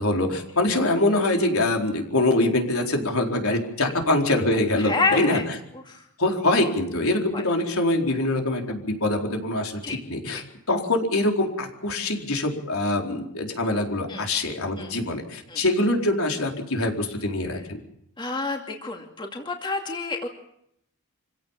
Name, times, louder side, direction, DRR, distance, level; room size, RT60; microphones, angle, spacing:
voice 1, 0.0-5.4 6.2-10.4 10.7-17.8, left 2 dB, 75° left, 2 dB, 4.3 m, -24 dB
voice 2, 4.8-5.4 5.7-6.0 7.3-7.4 9.8-10.0 10.3-10.4 14.1-14.3 14.8-14.9 15.5-15.6 18.2-20.3, left 3 dB, 20° left, 2 dB, 2.5 m, -29 dB
27.0 x 16.5 x 7.4 m, 0.74 s
head